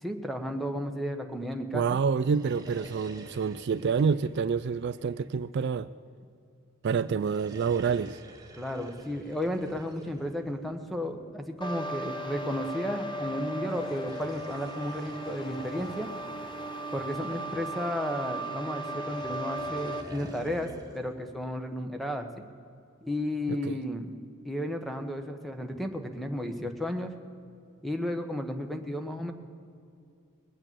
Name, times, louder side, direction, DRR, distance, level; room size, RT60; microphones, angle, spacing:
voice 1, 0.0-2.0 8.6-16.1 16.9-22.4 23.0-24.1 24.4-27.1 27.8-29.3, equal, ahead, 6 dB, 1.0 m, -33 dB
voice 2, 1.7-5.9 6.8-8.2 23.5-23.8, right 6 dB, 50° right, 14 dB, 0.3 m, -28 dB
sound 1, 2.2-5.8 7.1-11.4 13.6-17.6 18.9-21.2, right 1 dB, 15° right, 1.6 m, -48 dB
sound 2, 11.6-20.0, right 1 dB, 20° left, 0.8 m, -36 dB
20.5 x 8.8 x 7.5 m, 2.5 s
head